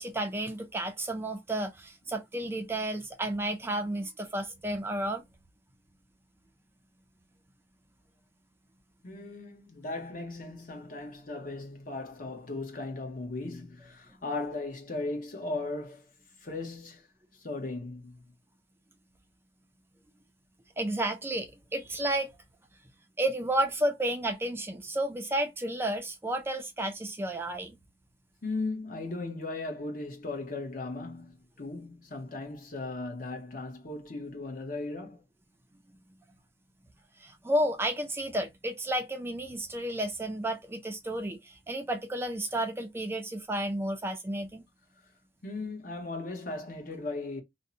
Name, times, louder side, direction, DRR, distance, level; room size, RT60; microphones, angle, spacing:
voice 1, 0.0-5.2 20.8-22.3 23.2-27.8 37.2-44.6, right 1 dB, 15° right, 0.3 m, -32 dB
voice 2, 9.0-16.1 16.4-17.1 17.3-18.2 28.4-35.2 45.4-47.4, left 2 dB, 50° left, 0.8 m, -37 dB
2.6 x 2.1 x 2.5 m
head